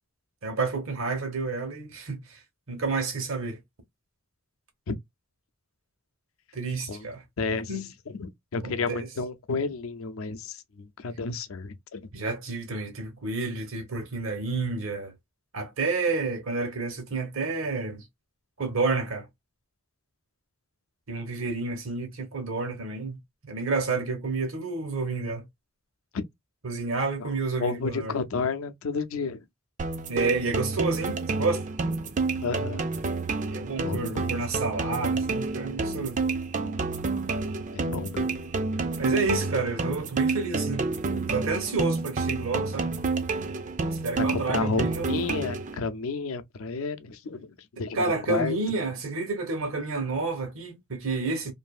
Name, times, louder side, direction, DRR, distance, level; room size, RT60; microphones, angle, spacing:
voice 1, 0.4-2.4 2.7-3.6 6.5-7.2 7.7-7.9 8.6-9.1 12.1-15.1 15.5-18.0 18.6-19.3 21.1-23.2 23.4-25.4 26.6-28.2 30.1-31.7 33.5-36.2 39.0-42.9 44.0-45.2 47.9-51.5, right 3 dB, 75° right, 1.0 m, -30 dB
voice 2, 7.4-7.7 8.1-12.1 21.1-21.3 26.1-26.3 27.2-27.3 27.6-29.4 32.4-32.8 33.8-34.4 37.7-38.3 44.2-48.6, left 4 dB, 75° left, 0.5 m, -31 dB
sound 1, 29.8-45.8, right 3 dB, 35° right, 0.4 m, -29 dB
2.6 x 2.6 x 2.3 m
head